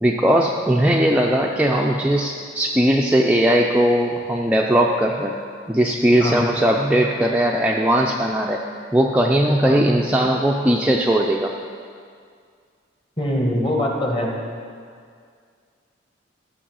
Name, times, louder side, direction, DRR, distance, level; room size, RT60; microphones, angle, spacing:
voice 1, 0.0-5.3 5.7-8.6 8.9-11.5, right 1 dB, 5° right, -1 dB, 0.4 m, -19 dB
voice 2, 13.2-14.3, left 1 dB, 25° left, -1 dB, 1.5 m, -23 dB
14.0 x 6.4 x 6.2 m, 2.1 s
head